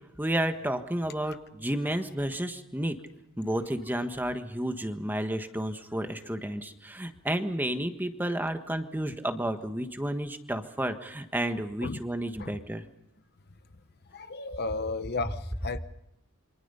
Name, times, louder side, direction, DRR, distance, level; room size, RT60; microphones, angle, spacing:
voice 1, 0.2-3.0 3.4-12.8, right 1 dB, 10° right, 7 dB, 1.4 m, -31 dB
voice 2, 14.1-15.8, left 3 dB, 50° left, 11 dB, 0.9 m, -34 dB
27.5 x 24.5 x 5.6 m, 0.83 s
head